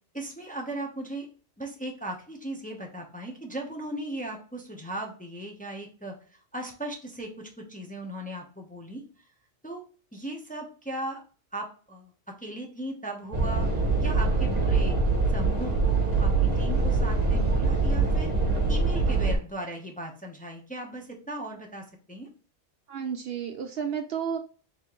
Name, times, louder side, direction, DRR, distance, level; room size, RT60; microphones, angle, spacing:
voice 1, 0.1-1.3 1.6-9.3 9.6-9.8 10.1-11.2 11.5-12.1 12.4-13.7 14.0-15.0 15.3-18.3 18.7-22.3, right 1 dB, 10° left, 0 dB, 0.7 m, -37 dB
sound 1, 13.3-19.3, right 3 dB, 35° right, 1.3 m, -24 dB
voice 2, 22.9-24.4, right 7 dB, 65° right, 6 dB, 0.7 m, -32 dB
4.2 x 3.5 x 3.0 m, 0.41 s
omnidirectional pair, 1.2 m